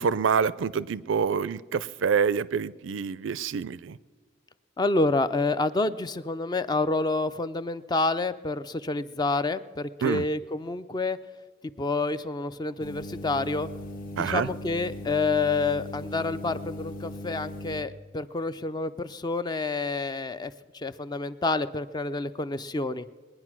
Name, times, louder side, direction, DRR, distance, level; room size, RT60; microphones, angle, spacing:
voice 1, 0.0-4.0 10.0-10.2 14.2-14.5, right 6 dB, 70° right, 19 dB, 0.4 m, -26 dB
voice 2, 4.8-11.2 11.8-13.7 14.1-23.1, left 3 dB, 20° left, 13 dB, 0.4 m, -28 dB
Faulty Fluorescent Light Starter & Hum, 12.8-17.8, left 1 dB, 45° left, 1.1 m, -39 dB
21.0 x 9.7 x 6.1 m, 1.5 s
head